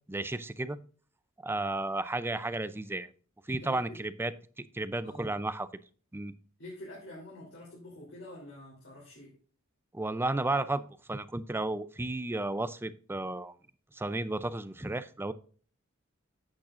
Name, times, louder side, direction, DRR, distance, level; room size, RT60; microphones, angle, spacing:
voice 1, 0.1-0.8 1.4-3.1 3.5-4.3 4.7-5.7 6.1-6.3 9.9-13.5 13.9-15.3, right 2 dB, 10° right, 14 dB, 0.4 m, -33 dB
voice 2, 3.5-4.0 5.0-5.3 6.6-9.4, left 1 dB, 60° left, -4 dB, 3.5 m, -47 dB
10.5 x 8.7 x 2.5 m, 0.41 s
head